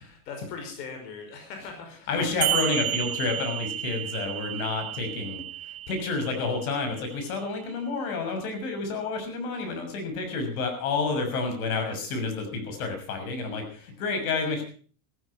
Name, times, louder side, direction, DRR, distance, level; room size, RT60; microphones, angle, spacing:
voice 1, 0.0-2.1, left 5 dB, 85° left, 4 dB, 5.5 m, -40 dB
voice 2, 1.9-5.4 5.9-14.6, left 4 dB, 65° left, 6 dB, 6.4 m, -29 dB
sound 1, 2.4-7.4, right 13 dB, 50° right, 1.6 m, -32 dB
15.0 x 14.5 x 5.7 m, 0.43 s
supercardioid pair, 180°, 47 cm